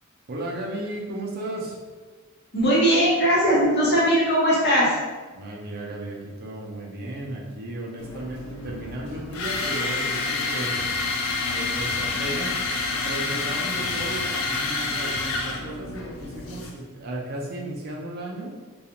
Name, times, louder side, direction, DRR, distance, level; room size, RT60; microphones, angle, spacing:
voice 1, 0.3-1.8 5.3-10.8 11.5-12.6 13.0-18.5, right 1 dB, 50° right, -2 dB, 0.5 m, -34 dB
voice 2, 2.5-4.9, equal, 55° left, -7 dB, 1.0 m, -19 dB
sound 1, 8.0-16.7, left 3 dB, 85° left, 0.4 m, -28 dB
2.4 x 2.3 x 2.8 m, 1.4 s
head